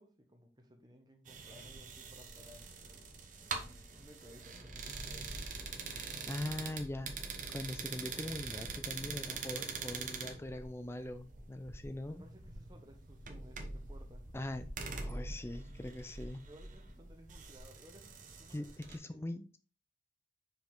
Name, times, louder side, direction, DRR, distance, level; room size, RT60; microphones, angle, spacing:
voice 1, 0.0-6.3 12.1-14.3 16.5-19.2, equal, 20° right, 3 dB, 1.1 m, -59 dB
sound 1, 1.3-19.0, right 4 dB, 40° right, 0.9 m, -44 dB
voice 2, 5.9-7.1 7.5-12.2 14.3-16.4 18.5-19.6, left 1 dB, 15° left, 9 dB, 0.4 m, -42 dB
5.3 x 4.9 x 3.8 m, 0.36 s
head